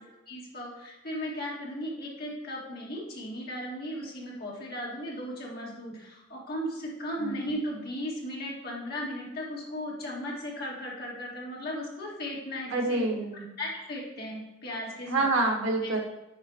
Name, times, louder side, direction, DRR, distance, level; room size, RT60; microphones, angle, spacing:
voice 1, 0.3-13.0 13.6-15.3, equal, 50° left, -3 dB, 1.9 m, -36 dB
voice 2, 12.7-13.5 15.1-16.0, right 2 dB, 80° right, 2 dB, 1.2 m, -27 dB
8.7 x 5.1 x 2.8 m, 1.0 s
head